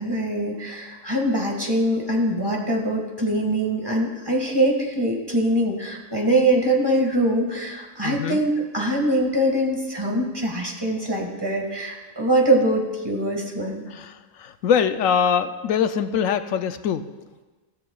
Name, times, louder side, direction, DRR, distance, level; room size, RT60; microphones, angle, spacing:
voice 1, 0.0-13.8, right 1 dB, 15° right, 0 dB, 1.7 m, -23 dB
voice 2, 8.0-8.4 13.9-17.1, left 7 dB, 70° left, 10 dB, 0.9 m, -23 dB
16.0 x 14.0 x 2.4 m, 1.3 s
omnidirectional pair, 1.6 m